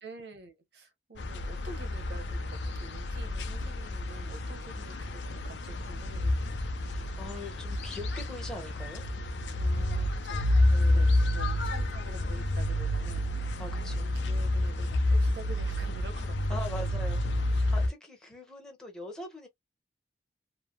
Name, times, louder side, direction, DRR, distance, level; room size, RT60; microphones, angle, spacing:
voice 1, 0.0-6.6 9.6-10.5 10.9-13.3 13.7-16.6 17.7-17.9, right 2 dB, 65° right, 0.9 m, -48 dB
sound 1, 1.2-17.9, left 1 dB, 90° left, 0.5 m, -29 dB
voice 2, 6.9-9.0 10.7-11.2 13.6-14.1 16.5-17.2 17.5-19.5, left 1 dB, 5° left, 0.9 m, -42 dB
3.2 x 2.1 x 2.3 m
head